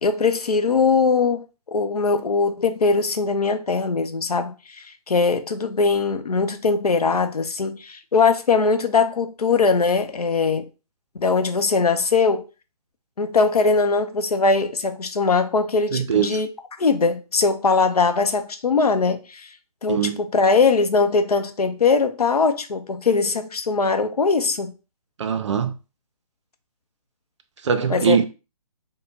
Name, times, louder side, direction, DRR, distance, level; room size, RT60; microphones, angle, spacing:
voice 1, 0.0-1.4 1.7-10.7 11.1-12.5 13.2-16.5 16.8-19.5 19.8-24.7 27.9-28.2, left 4 dB, 80° left, 0.6 m, -21 dB
voice 2, 15.9-16.4 19.9-20.2 25.2-25.7 27.6-28.2, right 7 dB, 50° right, 0.5 m, -21 dB
4.9 x 2.1 x 2.7 m
figure-of-eight pair, 140°, 19 cm